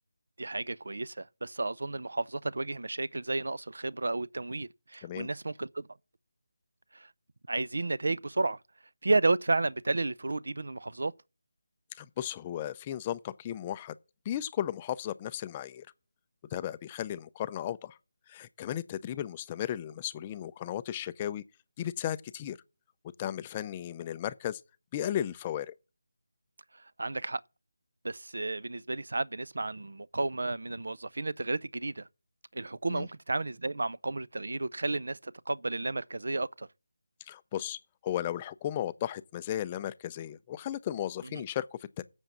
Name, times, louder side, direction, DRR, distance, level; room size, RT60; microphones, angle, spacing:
voice 1, 0.4-5.9 6.9-7.1 7.5-8.6 9.0-11.1 26.7-27.4 28.0-32.1 32.5-36.7 41.3-41.4, right 2 dB, 75° right, 0.5 m, -32 dB
voice 2, 12.0-14.0 14.3-15.9 16.5-18.0 18.3-21.4 21.8-22.6 23.2-24.6 24.9-25.7 32.9-33.1 37.3-42.0, left 11 dB, 15° left, 0.4 m, -35 dB
7.9 x 7.3 x 7.2 m
figure-of-eight pair, 170°, 0 cm